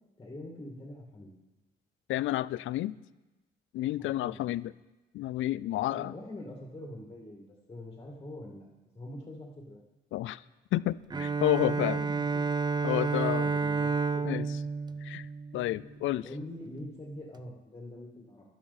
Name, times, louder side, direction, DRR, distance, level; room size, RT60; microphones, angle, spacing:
voice 1, 0.2-1.3 4.0-4.5 5.9-8.7 8.9-9.8 11.7-12.5 13.1-14.4 16.2-18.4, left 1 dB, 20° left, -1 dB, 2.3 m, -44 dB
voice 2, 2.1-3.0 3.7-4.7 5.1-6.1 10.1-10.4 10.7-12.0 12.8-13.5 14.2-14.5 15.0-15.3 15.5-16.3, left 15 dB, 75° left, 18 dB, 0.4 m, -30 dB
Bowed string instrument, 11.1-16.0, right 4 dB, 20° right, 0.5 m, -30 dB
12.0 x 12.0 x 4.2 m, 1.1 s
cardioid pair, 90°, 20 cm